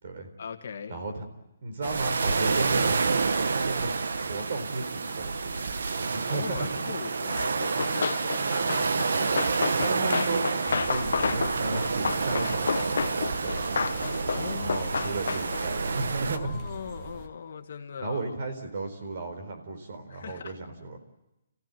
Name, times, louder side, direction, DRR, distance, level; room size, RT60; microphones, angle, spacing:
voice 1, 0.4-1.0 6.3-7.5 7.9-9.3 14.3-15.2 16.3-18.4 20.1-20.5, left 6 dB, 50° left, 6 dB, 1.8 m, -39 dB
voice 2, 0.9-1.2 1.6-3.0 3.5-3.9 4.3-6.6 9.8-10.5 10.9-14.0 14.5-16.6 18.0-21.0, right 3 dB, 45° right, 6 dB, 4.2 m, -34 dB
sound 1, 1.8-16.4, right 4 dB, 80° right, 1.3 m, -29 dB
Run, 7.6-15.8, left 5 dB, 65° left, 0.9 m, -31 dB
sound 2, 10.7-17.3, right 2 dB, 20° right, 1.8 m, -40 dB
29.5 x 16.0 x 9.1 m, 0.95 s
hypercardioid pair, 180°, 0 cm